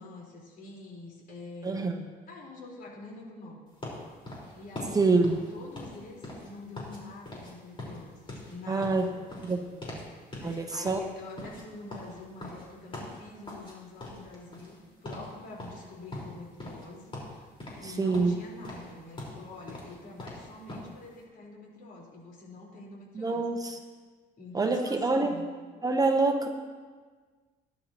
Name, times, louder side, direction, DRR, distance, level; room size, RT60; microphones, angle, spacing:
voice 1, 0.0-3.6 4.5-5.1 5.5-9.2 10.4-17.4 17.8-23.5 24.4-25.4, left 2 dB, 60° left, -3 dB, 4.4 m, -46 dB
voice 2, 1.6-2.0 4.9-5.4 8.7-9.1 9.4-10.1 10.4-11.0 17.8-18.4 23.1-23.8 24.5-25.4 25.8-26.5, right 3 dB, 20° right, 5 dB, 0.9 m, -26 dB
sound 1, 3.8-7.0 7.3-7.5 7.8-10.1 10.3-10.6 10.9-13.7 14.0-14.8 15.0-15.3 15.6-16.9 17.1-17.9 18.1-20.9, left 1 dB, 30° left, 4.5 m, -42 dB
19.0 x 11.0 x 3.0 m, 1.5 s
cardioid pair, 110°, 17 cm